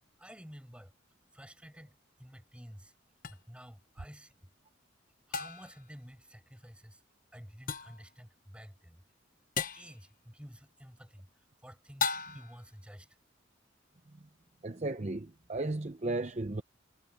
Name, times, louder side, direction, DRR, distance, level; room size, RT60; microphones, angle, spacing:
voice 1, 0.2-0.9 1.3-3.0 3.3-4.5 5.3-7.0 7.3-9.1 9.7-13.2, equal, 5° right, 6.3 m, -52 dB
sound 1, 3.2-3.4 5.3-5.8 7.7-8.0 9.6-9.9 12.0-12.6, left 6 dB, 45° left, 1.0 m, -35 dB
voice 2, 14.6-16.6, right 2 dB, 35° right, 0.7 m, -35 dB
head